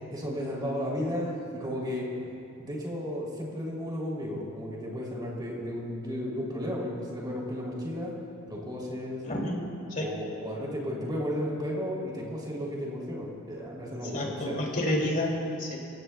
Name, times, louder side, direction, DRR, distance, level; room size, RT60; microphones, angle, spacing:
voice 1, 0.1-2.1 2.6-8.1 8.5-9.2 10.0-14.6, equal, 20° right, -3 dB, 3.1 m, -34 dB
voice 2, 9.3-9.6 9.9-10.2 14.1-15.8, left 1 dB, 40° left, -1 dB, 2.5 m, -29 dB
26.0 x 16.5 x 2.3 m, 2.6 s
head